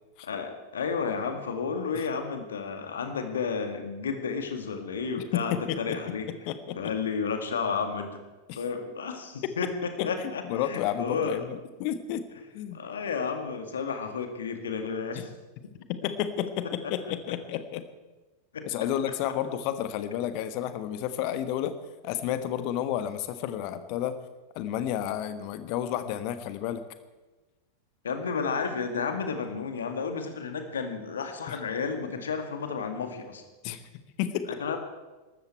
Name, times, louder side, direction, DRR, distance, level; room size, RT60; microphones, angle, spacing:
voice 1, 0.2-6.3 6.8-8.2 8.5-11.4 12.7-15.3 18.5-18.9 28.0-33.4 34.6-34.8, left 5 dB, 65° left, 6 dB, 2.0 m, -32 dB
voice 2, 5.3-6.0 6.3-6.9 8.5-8.6 10.0-10.1 10.4-12.3 12.5-12.8 15.1-15.3 15.9-17.8 18.6-21.8 22.0-24.2 24.5-26.8 31.5-31.6 33.6-33.8 34.2-34.5, left 11 dB, 45° left, 11 dB, 1.3 m, -31 dB
22.0 x 13.0 x 4.6 m, 1.2 s
figure-of-eight pair, 90°, 0 cm